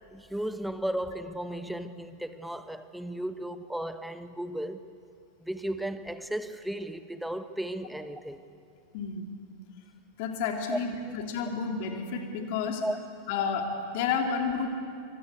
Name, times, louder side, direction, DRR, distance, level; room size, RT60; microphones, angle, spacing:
voice 1, 0.1-4.8 5.4-8.4 10.7-10.8 11.0-11.1 12.8-13.0, right 1 dB, ahead, 11 dB, 1.2 m, -35 dB
voice 2, 8.9-9.3 10.2-12.8 13.3-14.7, left 5 dB, 50° left, 3 dB, 2.7 m, -31 dB
25.0 x 23.5 x 8.3 m, 2.4 s
figure-of-eight pair, 90°, 0 cm